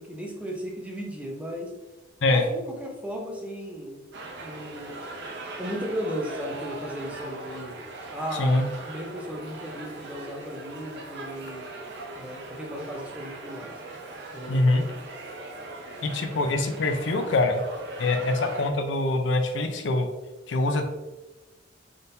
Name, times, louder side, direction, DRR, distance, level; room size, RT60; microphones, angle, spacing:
voice 1, 0.0-1.7 2.3-4.1 4.4-5.0 5.6-7.8 8.1-11.7 12.2-13.8 14.3-14.9, equal, 5° right, 0 dB, 0.6 m, -36 dB
sound 1, 4.1-18.7, right 2 dB, 60° right, 0.6 m, -40 dB
voice 2, 14.5-14.8 16.0-17.6 18.0-20.1 20.5-20.8, left 2 dB, 65° left, 6 dB, 0.5 m, -24 dB
4.0 x 3.6 x 2.7 m, 1.1 s
head